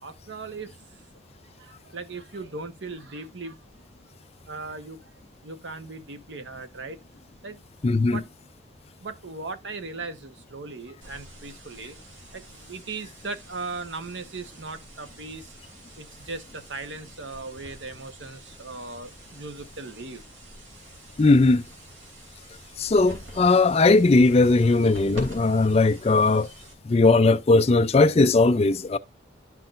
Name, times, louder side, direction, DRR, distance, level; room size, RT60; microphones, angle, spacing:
voice 1, 0.0-0.7 1.6-3.6 4.5-5.0 5.4-7.0 7.4-7.6 8.0-8.2 9.0-12.0 12.3-15.5 16.0-20.2, right 3 dB, 70° right, 1.1 m, -38 dB
voice 2, 7.8-8.2 21.2-21.6 22.8-26.5 26.8-29.0, left 3 dB, 30° left, 0.4 m, -19 dB
sound 1, 11.0-27.0, right 1 dB, 85° right, 3.0 m, -47 dB
11.5 x 6.0 x 2.5 m
head